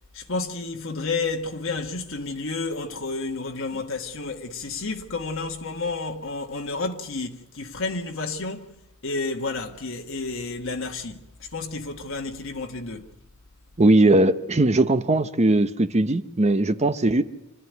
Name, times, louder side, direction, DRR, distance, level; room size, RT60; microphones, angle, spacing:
voice 1, 0.1-8.7 9.0-13.1, left 3 dB, 65° left, 1.4 m, -31 dB
voice 2, 13.8-17.2, right 2 dB, 35° right, 0.8 m, -19 dB
26.5 x 13.0 x 9.3 m
head